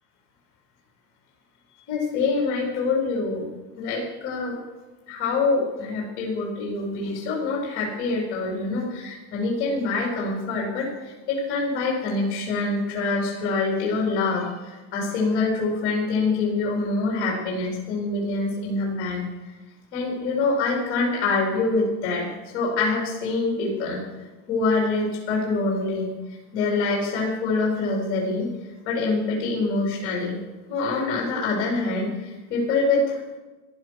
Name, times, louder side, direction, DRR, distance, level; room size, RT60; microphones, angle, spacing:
voice 1, 1.9-3.4 3.8-4.6 5.1-19.5 19.9-22.3 22.5-24.0 24.5-26.1 26.5-28.5 28.9-30.4 30.7-33.4, left 3 dB, 35° left, -3 dB, 4.1 m, -25 dB
14.5 x 11.5 x 6.5 m, 1.2 s
cardioid pair, 175°, 34 cm